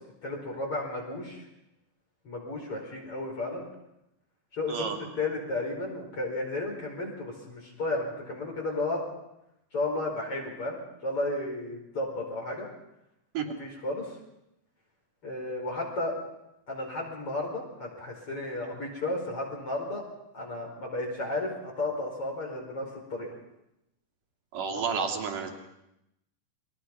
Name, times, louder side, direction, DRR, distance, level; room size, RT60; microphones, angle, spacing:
voice 1, 0.2-1.4 2.2-3.6 4.5-4.9 5.2-9.0 9.7-12.7 13.4-14.2 15.2-16.1 16.7-20.0 20.3-23.3 24.7-25.1, left 2 dB, 45° left, -1 dB, 5.8 m, -33 dB
voice 2, 24.5-25.5, right 6 dB, 80° right, 2 dB, 4.2 m, -30 dB
29.0 x 22.5 x 5.5 m, 0.85 s
omnidirectional pair, 3.7 m